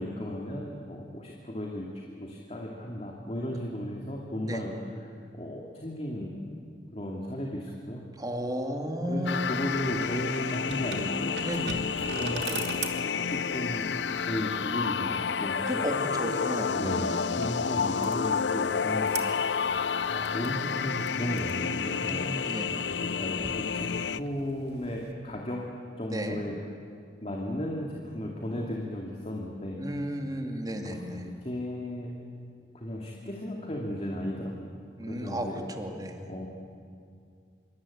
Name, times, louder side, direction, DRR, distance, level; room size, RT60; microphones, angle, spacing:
voice 1, 0.0-1.9 2.2-4.7 5.0-5.1 5.3-6.4 6.9-8.0 9.0-11.3 12.1-12.6 13.3-13.9 14.2-15.8 16.7-19.4 20.0-22.3 23.0-25.6 26.0-26.6 27.2-29.8 30.8-32.1 32.7-34.8 35.0-35.6 36.3-36.5, equal, 35° left, 0 dB, 2.6 m, -35 dB
voice 2, 8.2-9.5 11.4-12.0 15.7-17.2 21.9-22.7 26.1-26.4 29.8-31.3 35.0-36.3, equal, 20° right, 3 dB, 2.5 m, -34 dB
sound 1, 9.3-24.2, left 6 dB, 75° left, 0.6 m, -30 dB
sound 2, 9.4-25.1, right 5 dB, 65° right, 2.8 m, -44 dB
26.0 x 24.5 x 8.7 m, 2.4 s
head